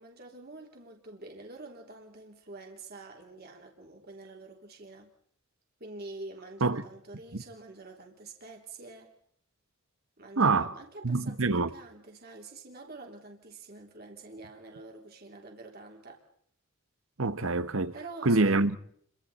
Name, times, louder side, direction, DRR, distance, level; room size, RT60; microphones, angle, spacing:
voice 1, 0.0-5.1 5.8-9.1 10.2-16.2 17.9-18.7, right 2 dB, 50° right, 3.3 m, -47 dB
voice 2, 10.4-10.7 11.0-11.7 17.2-17.9 18.2-18.8, right 3 dB, 85° right, 1.2 m, -25 dB
29.5 x 24.0 x 4.2 m
head